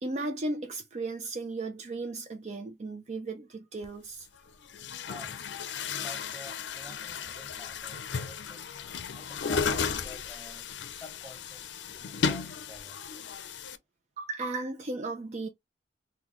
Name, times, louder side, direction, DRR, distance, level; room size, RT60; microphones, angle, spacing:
voice 1, 0.0-4.3 14.2-15.5, right 2 dB, 40° right, 0.4 m, -35 dB
Chatter / Gurgling / Tap, 3.8-3.9 4.6-13.8, left 6 dB, 80° left, 0.5 m, -34 dB
voice 2, 5.1-8.7 9.1-13.1, equal, ahead, 1.4 m, -49 dB
3.8 x 2.2 x 3.0 m
head